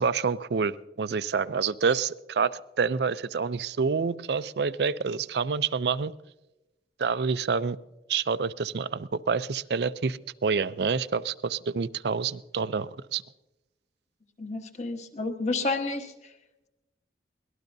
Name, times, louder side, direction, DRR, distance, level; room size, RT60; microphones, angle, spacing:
voice 1, 0.0-2.5 2.8-6.1 7.0-7.8 8.1-13.2, right 5 dB, 70° right, 15 dB, 0.5 m, -27 dB
voice 2, 14.4-16.1, left 3 dB, 40° left, 5 dB, 1.2 m, -30 dB
23.5 x 18.5 x 2.7 m, 0.99 s
head